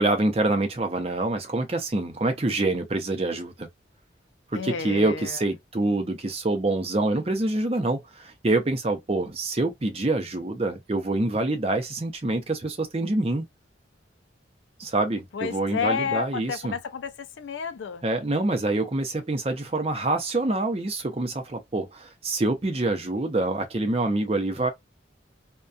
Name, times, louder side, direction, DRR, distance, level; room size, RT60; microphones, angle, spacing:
voice 1, 0.0-3.7 4.6-13.4 14.8-16.7 18.0-24.7, right 2 dB, 30° right, 0.6 m, -26 dB
voice 2, 4.5-5.4 15.3-18.0, left 6 dB, 75° left, 0.4 m, -31 dB
2.3 x 2.2 x 2.5 m
head